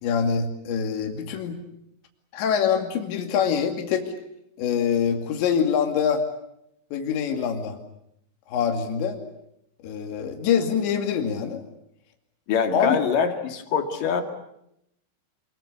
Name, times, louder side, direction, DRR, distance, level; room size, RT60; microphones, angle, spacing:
voice 1, 0.0-1.6 2.3-4.1 4.6-6.2 6.9-7.8 8.5-9.2 9.8-11.6 12.7-13.0, left 7 dB, 70° left, 4 dB, 4.6 m, -24 dB
voice 2, 12.5-14.2, left 6 dB, 55° left, 6 dB, 3.2 m, -24 dB
27.0 x 21.5 x 8.4 m, 0.78 s
omnidirectional pair, 5.6 m